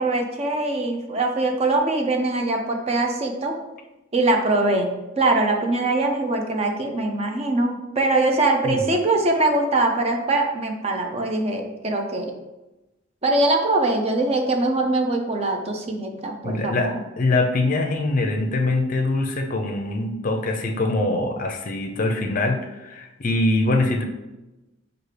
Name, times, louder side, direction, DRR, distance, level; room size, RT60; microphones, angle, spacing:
voice 1, 0.0-3.6 4.1-4.9 5.2-12.3 13.2-16.9, right 2 dB, 30° right, 3 dB, 0.5 m, -22 dB
voice 2, 16.4-24.0, left 2 dB, 45° left, 3 dB, 0.5 m, -23 dB
6.1 x 2.4 x 3.2 m, 1.0 s
head